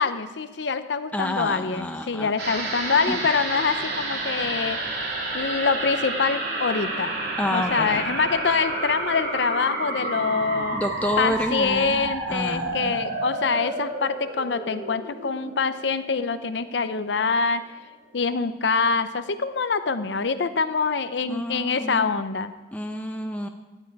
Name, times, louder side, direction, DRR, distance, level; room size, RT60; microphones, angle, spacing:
voice 1, 0.0-4.8 5.3-7.1 7.5-10.8 11.2-17.6 18.1-22.5, left 5 dB, 70° left, 11 dB, 0.6 m, -25 dB
voice 2, 1.1-2.3 3.1-3.2 7.4-8.2 10.7-13.0 21.3-22.1 22.7-23.5, left 1 dB, 10° left, 4 dB, 0.6 m, -29 dB
sound 1, 2.4-17.0 17.3-17.4, right 2 dB, 60° right, 3.0 m, -30 dB
15.5 x 11.5 x 4.7 m, 1.2 s
head